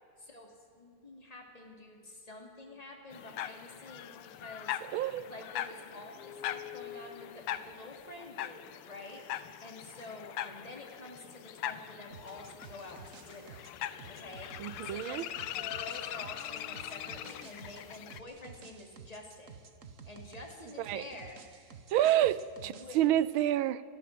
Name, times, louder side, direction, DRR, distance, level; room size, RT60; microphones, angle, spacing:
voice 1, 0.2-4.8 5.2-8.6 8.9-13.6 14.2-15.3 15.5-19.6 20.0-21.4 22.2-22.3 22.6-23.0, left 2 dB, 15° left, 1 dB, 3.0 m, -48 dB
sound 1, 3.1-18.2, left 11 dB, 85° left, 1.7 m, -41 dB
voice 2, 4.9-5.2 14.6-15.2 20.8-21.1 21.9-23.8, right 13 dB, 75° right, 17 dB, 1.4 m, -28 dB
sound 2, 12.1-23.1, right 6 dB, 45° right, 1.3 m, -52 dB
24.0 x 15.0 x 7.6 m, 2.3 s
omnidirectional pair, 2.4 m